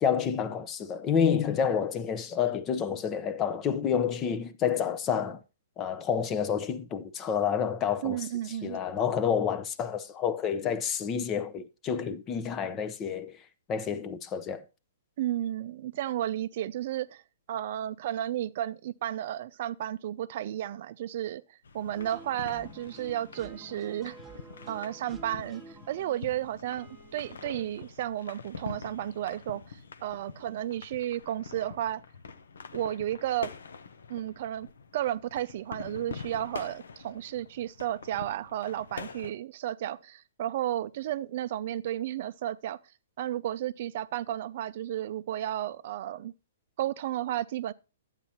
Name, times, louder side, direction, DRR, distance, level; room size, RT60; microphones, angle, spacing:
voice 1, 0.0-5.4 5.8-8.2 8.6-13.3 13.7-14.6, left 7 dB, 25° left, 0.7 m, -29 dB
voice 2, 8.0-8.8 15.2-17.2 17.5-24.2 24.7-32.0 32.7-33.5 34.1-34.7 34.9-42.8 43.2-46.3 46.8-47.7, right 12 dB, 55° right, 0.4 m, -33 dB
sound 1, 21.6-39.3, left 5 dB, 80° left, 0.7 m, -45 dB
sound 2, 22.0-27.7, right 3 dB, 5° right, 1.1 m, -50 dB
11.5 x 8.9 x 2.8 m
hypercardioid pair, 135°, 0 cm